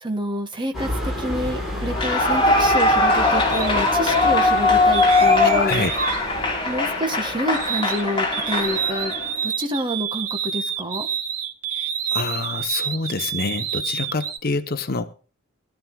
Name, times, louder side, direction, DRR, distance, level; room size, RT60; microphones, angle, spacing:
voice 1, 0.0-5.9 6.6-9.1 9.4-11.1, equal, 20° right, 1.8 m, -28 dB
sound 1, 0.7-9.3, equal, ahead, 7.1 m, -32 dB
Clapping / Cheering / Applause, 1.9-9.3, left 2 dB, 20° left, 2.8 m, -20 dB
sound 2, 3.5-3.7 4.9-8.0 8.3-14.4, right 8 dB, 85° right, 1.9 m, -29 dB
voice 2, 5.4-5.9 12.1-15.1, left 3 dB, 45° left, 0.9 m, -26 dB
21.0 x 12.5 x 2.3 m
head